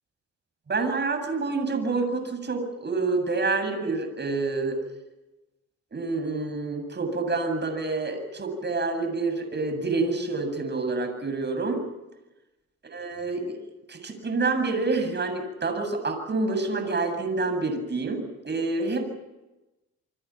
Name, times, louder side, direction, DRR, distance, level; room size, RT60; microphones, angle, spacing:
voice 1, 0.7-4.8 5.9-11.8 12.9-13.6 13.9-19.1, right 3 dB, 35° right, 6 dB, 7.9 m, -27 dB
28.5 x 25.5 x 6.0 m, 1.0 s
cardioid pair, 90°, 30 cm